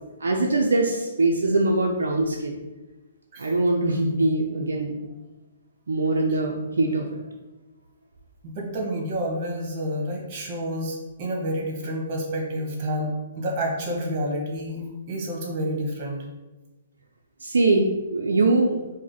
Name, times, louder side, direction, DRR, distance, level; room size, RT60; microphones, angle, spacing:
voice 1, 0.2-2.6 3.4-5.0 5.9-7.2 17.4-18.8, right 2 dB, 75° right, 1 dB, 0.5 m, -22 dB
voice 2, 8.4-13.1 13.4-16.2, equal, 40° right, -1 dB, 1.3 m, -29 dB
4.7 x 2.1 x 3.9 m, 1.1 s
figure-of-eight pair, 125°, 0 cm